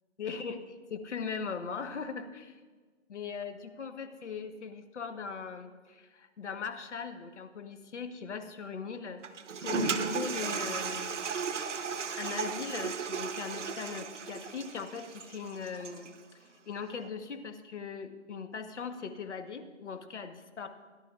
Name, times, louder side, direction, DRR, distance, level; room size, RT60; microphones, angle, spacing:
voice 1, 0.2-2.6 3.1-9.2 9.6-11.3 12.2-16.1 16.4-20.7, left 5 dB, 65° left, 7 dB, 1.3 m, -40 dB
Toilet flush, 9.2-16.2, right 5 dB, 70° right, 1.0 m, -35 dB
17.5 x 10.5 x 2.5 m, 1.4 s
hypercardioid pair, 170°, 37 cm